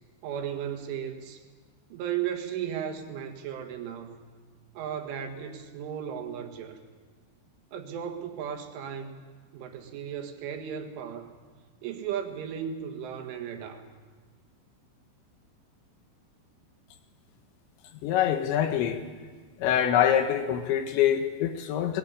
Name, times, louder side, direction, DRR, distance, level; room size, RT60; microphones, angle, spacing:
voice 1, 0.2-1.4 1.9-4.2 4.8-6.8 7.7-9.2 9.5-11.3 11.8-13.9, right 9 dB, 75° right, 6 dB, 4.0 m, -35 dB
voice 2, 18.0-19.0 19.6-22.0, left 10 dB, 75° left, 7 dB, 3.2 m, -25 dB
20.0 x 20.0 x 8.9 m, 1.5 s
omnidirectional pair, 5.8 m